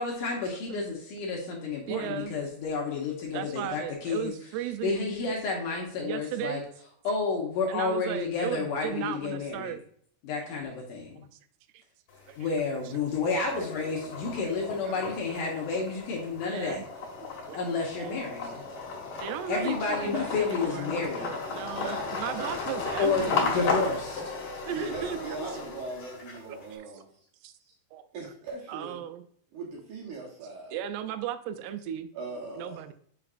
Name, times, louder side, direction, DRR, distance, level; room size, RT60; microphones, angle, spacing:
voice 1, 0.0-4.3 4.8-6.6 7.0-9.7 10.2-11.2 12.4-16.8 17.5-18.6 19.5-21.4 23.0-24.2, left 4 dB, 70° left, -1 dB, 2.3 m, -30 dB
voice 2, 1.9-2.4 3.3-5.3 6.0-6.6 7.7-9.8 11.3-11.4 11.7-11.8 12.3-12.4 14.8-15.0 16.4-16.9 17.5-17.6 18.0-18.2 19.2-23.5 24.6-25.6 26.5-27.0 27.4-27.5 27.9-28.3 28.7-29.3 30.7-32.1 32.6-32.9, right 9 dB, 85° right, 10 dB, 2.6 m, -36 dB
sound 1, 12.1-12.7 13.1-26.7, left 4 dB, 50° left, 2.4 m, -35 dB
voice 3, 21.8-22.6 23.1-23.7 24.7-27.3 27.6-27.7 28.1-29.1 29.5-30.7 32.1-32.8, right 3 dB, 65° right, -2 dB, 2.2 m, -39 dB
6.9 x 5.8 x 2.5 m, 0.63 s
omnidirectional pair, 4.7 m